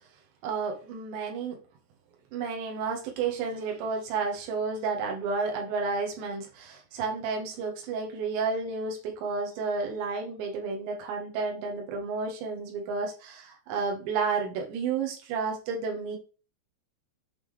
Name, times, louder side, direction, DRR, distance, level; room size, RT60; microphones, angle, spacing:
voice 1, 0.4-1.6 2.3-16.2, right 4 dB, 80° right, 1 dB, 3.6 m, -31 dB
8.2 x 3.8 x 3.3 m, 0.34 s
omnidirectional pair, 5.1 m